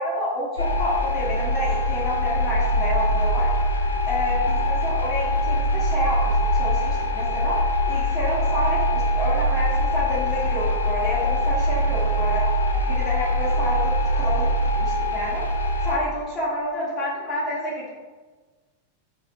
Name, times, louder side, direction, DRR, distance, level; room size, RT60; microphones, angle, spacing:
voice 1, 0.0-3.5 4.1-7.6 7.9-12.4 12.8-14.5 14.8-15.4 15.8-17.9, equal, 30° left, -7 dB, 0.8 m, -28 dB
sound 1, 0.6-16.0, equal, 75° left, 0.3 m, -23 dB
2.5 x 2.4 x 3.8 m, 1.3 s
figure-of-eight pair, 90°, 0 cm